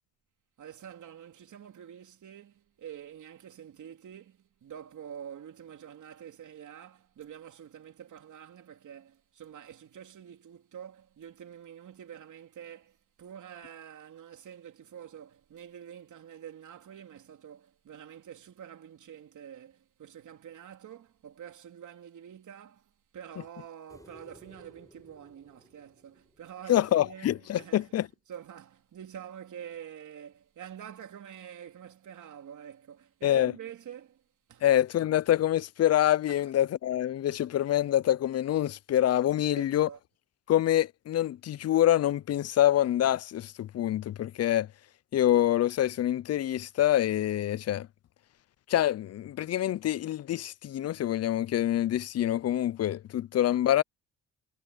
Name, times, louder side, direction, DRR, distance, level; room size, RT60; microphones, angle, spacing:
voice 1, 0.6-28.0 28.3-34.2 34.5-34.7 36.3-36.4 39.4-40.0, right 9 dB, 65° right, 3.5 m, -47 dB
sound 1, 23.9-27.2 29.7-29.8, left 1 dB, 10° left, 6.6 m, -57 dB
voice 2, 26.7-28.1 33.2-33.5 34.6-39.9 40.5-44.7 45.1-47.9 48.7-53.8, left 12 dB, 50° left, 0.5 m, -26 dB
cardioid pair, 75°, 32 cm